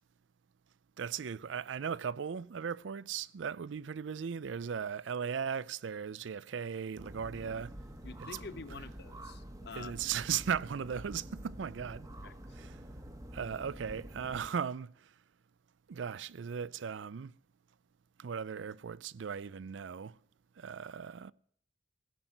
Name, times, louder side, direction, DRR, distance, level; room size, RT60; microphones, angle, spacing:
voice 1, 1.0-7.7 8.7-8.8 9.8-12.1 12.5-12.8 13.3-14.9 15.9-17.3 18.2-20.2 20.6-21.3, right 7 dB, 75° right, 0.4 m, -37 dB
sound 1, 7.0-14.5, right 1 dB, 20° right, 1.1 m, -48 dB
voice 2, 8.0-10.0 12.2-12.3, left 4 dB, 60° left, 0.8 m, -47 dB
16.0 x 6.1 x 9.1 m
head